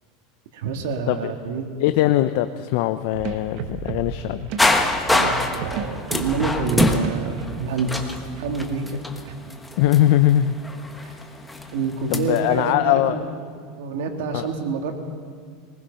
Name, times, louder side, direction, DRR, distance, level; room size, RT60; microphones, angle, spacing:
voice 1, 0.5-1.8 5.0-7.9 8.3-9.0 9.2-9.3 11.0-11.1 11.7-13.3 13.8-14.9, right 4 dB, 80° right, 3 dB, 2.8 m, -27 dB
voice 2, 1.8-4.5 9.8-10.6 12.1-13.2 14.3-14.5, left 13 dB, 60° left, 10 dB, 0.7 m, -20 dB
sound 1, 3.1-8.8, right 6 dB, 50° right, 1.5 m, -34 dB
sound 2, 4.6-12.6, left 2 dB, 5° left, 1.4 m, -25 dB
23.0 x 20.5 x 5.7 m, 2.1 s
supercardioid pair, 160°, 0 cm